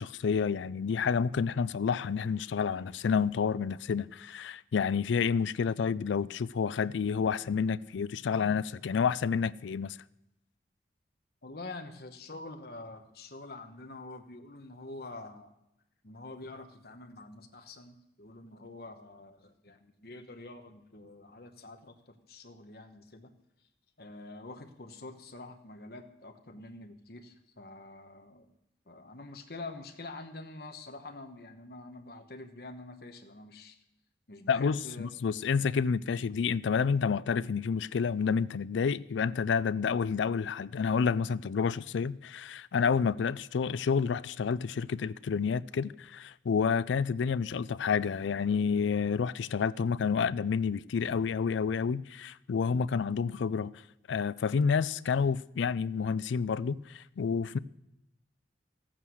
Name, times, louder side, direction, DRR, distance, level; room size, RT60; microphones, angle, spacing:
voice 1, 0.0-10.0 34.5-53.7 54.1-57.6, left 6 dB, 85° left, 0.4 m, -29 dB
voice 2, 11.4-15.5 16.0-23.3 24.0-28.5 28.9-33.8 34.3-35.1, left 2 dB, 55° left, 1.2 m, -46 dB
14.0 x 8.8 x 6.3 m
head